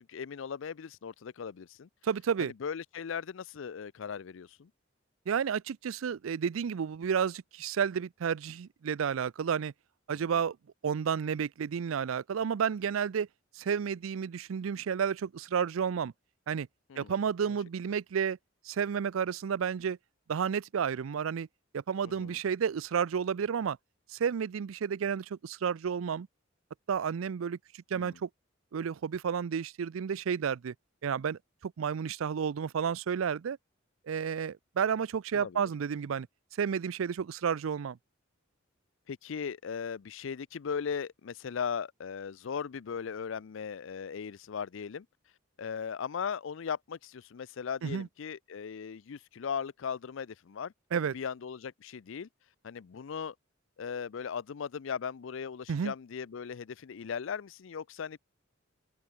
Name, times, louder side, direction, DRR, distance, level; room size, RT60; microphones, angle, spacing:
voice 1, 0.0-1.9 2.4-4.7 10.2-10.3 16.9-17.1 22.0-22.4 27.9-28.2 35.3-35.7 39.1-45.1 45.6-50.7 51.1-52.3 52.6-53.3 53.8-58.2, left 6 dB, 70° left, 0.5 m, -38 dB
voice 2, 2.0-2.5 5.3-9.7 10.1-10.6 10.8-13.3 13.6-16.1 16.5-16.7 17.0-18.4 18.6-20.0 20.3-21.5 21.7-23.8 24.1-26.3 26.9-28.3 28.7-30.7 31.0-33.6 34.1-36.3 36.6-38.0 47.8-48.1 50.9-51.1 55.7-55.9, right 7 dB, 85° right, 0.4 m, -31 dB
open air
head